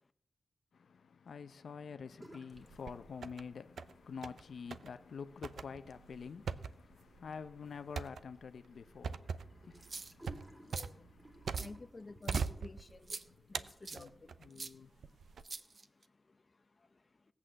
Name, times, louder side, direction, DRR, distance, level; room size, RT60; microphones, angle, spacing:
voice 1, 0.7-11.7 13.2-15.2, left 6 dB, 70° left, 0.7 m, -49 dB
sound 1, 2.1-2.7 3.0-3.7 4.0-13.5, right 1 dB, 15° right, 2.0 m, -60 dB
sound 2, 2.5-3.4 3.8-4.4 4.7-4.9 5.4-11.9 12.3-13.1 13.5-14.5 15.0-15.4, right 6 dB, 85° right, 0.6 m, -41 dB
sound 3, 9.7-10.3 10.7-10.9 11.5-11.7 12.2-12.5 13.1-13.2 13.8-14.0 14.6-14.7 15.4-16.0, right 3 dB, 35° right, 0.8 m, -44 dB
voice 2, 10.7-11.1 11.6-15.2 15.6-17.1, left 3 dB, 30° left, 0.7 m, -54 dB
17.5 x 8.3 x 7.5 m
wide cardioid pair, 150°, 0 cm